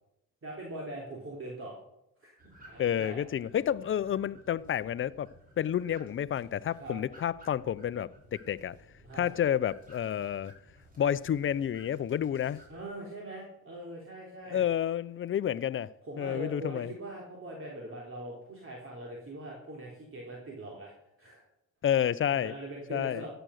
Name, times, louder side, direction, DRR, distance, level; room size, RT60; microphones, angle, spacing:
voice 1, 0.4-1.8 2.2-2.4 2.7-3.2 6.8-7.0 9.0-9.3 12.7-14.6 16.0-20.9 21.2-21.4 22.3-23.3, right 1 dB, 45° right, 3.6 m, -42 dB
sound 1, 2.4-12.9, equal, 30° right, 5.9 m, -56 dB
voice 2, 2.8-5.3 5.6-8.8 9.2-10.5 11.0-12.6 14.5-15.9 16.2-16.9 21.8-22.5 22.9-23.3, left 9 dB, 40° left, 0.6 m, -30 dB
14.0 x 9.0 x 6.5 m
cardioid pair, 90°, 30 cm